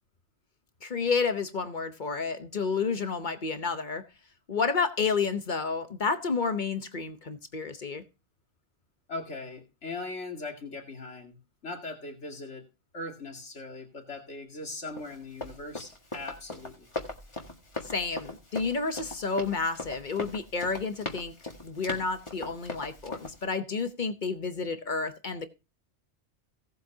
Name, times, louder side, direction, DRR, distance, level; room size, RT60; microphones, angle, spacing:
voice 1, 0.8-4.0 4.5-8.0 17.8-21.3 21.6-25.5, left 4 dB, 45° left, 1.0 m, -30 dB
voice 2, 9.1-11.4 11.6-12.6 12.9-16.9, left 2 dB, 90° left, 2.7 m, -40 dB
Run, 15.0-23.4, left 2 dB, 25° left, 1.8 m, -39 dB
17.5 x 7.9 x 2.7 m
omnidirectional pair, 1.2 m